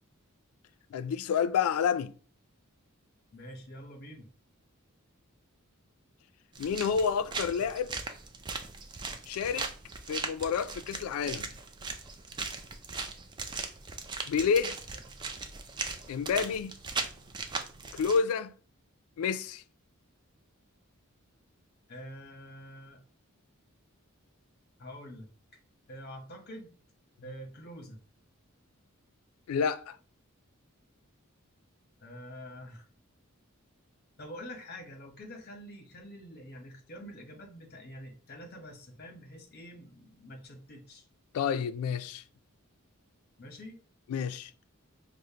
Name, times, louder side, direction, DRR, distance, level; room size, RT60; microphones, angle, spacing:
voice 1, 0.9-2.1 6.6-7.9 9.3-9.7 10.1-11.5 14.3-14.7 16.1-16.7 17.9-18.5 19.2-19.6 29.5-30.0 41.3-42.2 44.1-44.5, left 6 dB, 85° left, 0.3 m, -29 dB
voice 2, 3.3-4.3 21.9-23.0 24.8-25.3 25.9-26.7 27.2-28.0 32.0-32.9 34.2-41.0 43.4-43.8, equal, 45° left, 0.8 m, -46 dB
sound 1, 6.5-18.2, right 4 dB, 20° right, 0.3 m, -39 dB
5.0 x 2.0 x 2.7 m
head